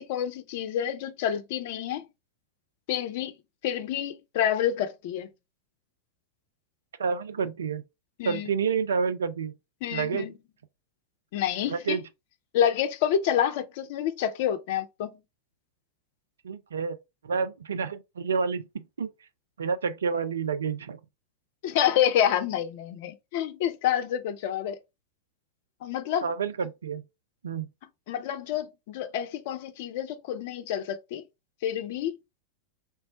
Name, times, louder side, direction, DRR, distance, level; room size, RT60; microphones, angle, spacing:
voice 1, 0.0-2.0 2.9-3.4 3.6-5.3 8.2-8.5 9.8-10.3 11.3-12.0 12.5-15.1 21.6-24.8 25.8-26.3 28.1-31.2 31.6-32.1, left 10 dB, 50° left, 0.4 m, -28 dB
voice 2, 7.0-7.8 8.2-9.5 9.9-10.3 11.7-12.0 16.4-17.0 17.2-19.1 19.6-21.0 26.2-27.0 27.4-27.7, right 6 dB, 70° right, 0.3 m, -29 dB
3.3 x 2.1 x 2.7 m
figure-of-eight pair, 90°, 0 cm